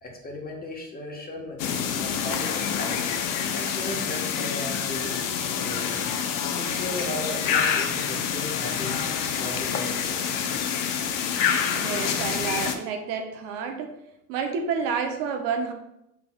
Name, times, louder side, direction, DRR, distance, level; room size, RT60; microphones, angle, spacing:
voice 1, 0.0-3.1 3.5-6.1 6.5-9.0 9.3-10.5, left 1 dB, 25° left, 0 dB, 1.2 m, -37 dB
sound 1, 1.6-12.8, left 7 dB, 70° left, 0.6 m, -27 dB
voice 2, 11.7-14.0 14.3-15.7, right 6 dB, 85° right, 4 dB, 0.8 m, -29 dB
6.0 x 3.4 x 2.3 m, 0.85 s
supercardioid pair, 95°, 35 cm